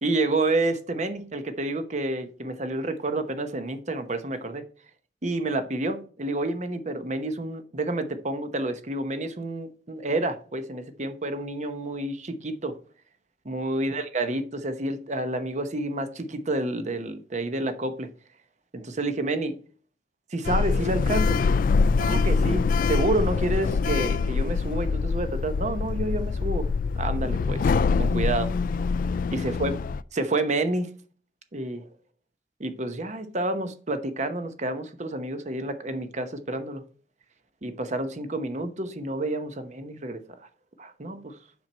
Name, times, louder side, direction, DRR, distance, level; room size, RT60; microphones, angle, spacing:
voice 1, 0.0-4.6 5.2-12.8 13.4-18.1 18.7-19.6 20.3-21.4 22.0-26.7 27.0-28.5 29.3-29.7 30.1-30.9 31.5-31.9 32.6-36.8 37.6-40.2 40.8-41.3, right 2 dB, 40° right, 0.9 m, -29 dB
Sliding door, 20.4-30.0, left 4 dB, 50° left, 0.3 m, -24 dB
7.3 x 6.1 x 4.2 m
head